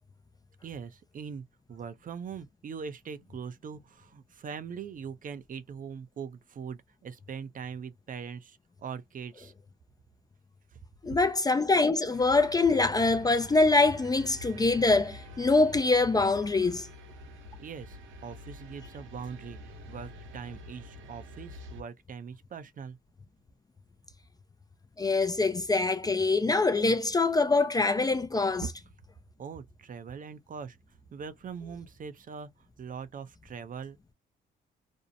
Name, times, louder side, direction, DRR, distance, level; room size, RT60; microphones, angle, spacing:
voice 1, 0.6-9.5 11.1-11.2 17.6-23.0 28.6-28.7 29.4-30.8 31.1-32.5 32.8-34.1, right 6 dB, 45° right, 0.5 m, -41 dB
voice 2, 11.0-16.9 25.0-28.6, left 3 dB, 20° left, 0.3 m, -24 dB
sound 1, 12.1-21.8, left 1 dB, 75° right, 0.9 m, -47 dB
2.6 x 2.0 x 2.6 m
cardioid pair, 85°, 20 cm